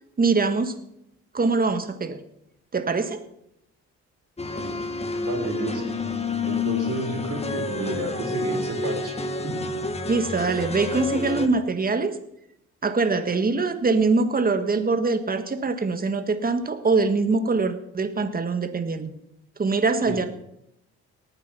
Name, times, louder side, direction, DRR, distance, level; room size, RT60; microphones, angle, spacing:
voice 1, 0.2-0.7 1.3-2.2 2.7-3.2 10.1-12.1 12.8-19.1 19.6-20.3, right 4 dB, 30° right, 9 dB, 1.7 m, -23 dB
sound 1, 4.4-11.5, left 3 dB, 20° left, 1.6 m, -29 dB
voice 2, 5.2-5.9 6.4-9.2 9.4-9.6 20.1-20.2, right 2 dB, 50° right, 4 dB, 3.8 m, -31 dB
19.0 x 9.0 x 5.8 m, 0.78 s
cardioid pair, 90°, 30 cm